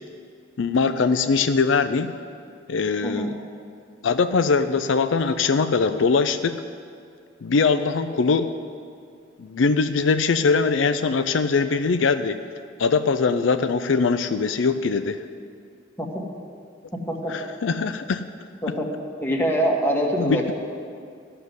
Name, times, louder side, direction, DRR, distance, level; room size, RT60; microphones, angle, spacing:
voice 1, 0.6-2.1 2.7-3.4 4.0-6.6 7.4-8.5 9.4-12.4 12.8-15.2 17.3-18.3 20.2-20.5, left 4 dB, 75° left, 9 dB, 0.5 m, -22 dB
voice 2, 3.0-3.4 16.0-16.1 17.1-17.3 18.6-18.9 19.2-20.5, equal, 10° left, -1 dB, 1.5 m, -24 dB
14.0 x 6.7 x 9.5 m, 2.3 s
head